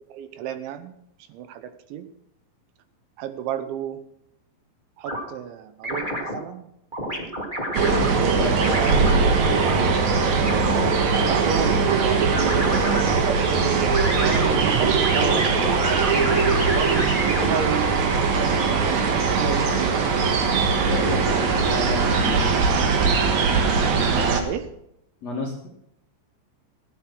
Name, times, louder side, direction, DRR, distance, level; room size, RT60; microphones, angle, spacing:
voice 1, 0.1-0.9 1.3-2.1 3.2-4.0 5.0-6.7 8.2-9.1 10.8-13.7 14.2-20.4 24.3-24.8, right 9 dB, 80° right, 11 dB, 3.0 m, -32 dB
sound 1, 5.0-5.2 5.8-6.4 6.9-8.1 8.6-9.7 10.5-11.7 12.3-13.0 13.8-17.5, equal, 20° right, 1.2 m, -29 dB
sound 2, 7.7-24.4, right 4 dB, 60° right, 1.9 m, -21 dB
voice 2, 20.9-22.5 25.2-25.7, left 2 dB, 55° left, -2 dB, 1.9 m, -31 dB
15.0 x 9.4 x 6.1 m, 0.78 s
omnidirectional pair, 5.7 m